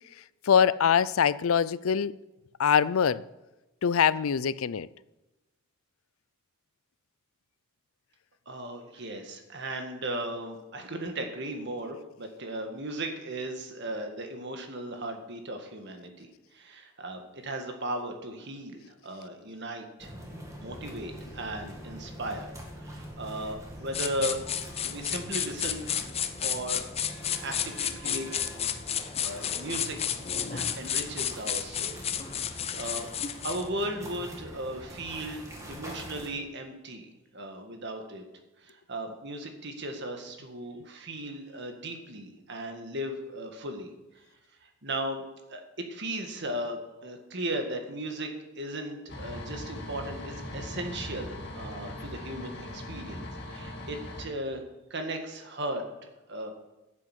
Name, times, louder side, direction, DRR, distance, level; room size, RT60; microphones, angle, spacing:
voice 1, 0.4-2.1 2.6-3.2 3.8-4.9, left 7 dB, 75° left, 0.4 m, -23 dB
voice 2, 8.5-20.1 20.6-22.5 22.8-24.4 24.8-25.9 26.4-26.8 27.4-28.3 29.2-30.0 30.3-33.0 33.4-38.2 38.6-43.9 44.6-45.2 45.5-45.6 45.9-48.3 48.6-54.6 54.9-55.8 56.3-56.5, right 1 dB, 55° right, 1.8 m, -36 dB
sound 1, 20.0-36.3, equal, 15° right, 2.2 m, -44 dB
sound 2, 23.9-33.7, left 9 dB, 30° left, 0.6 m, -32 dB
sound 3, 49.1-54.3, left 1 dB, 50° left, 2.0 m, -40 dB
11.0 x 7.8 x 8.2 m
head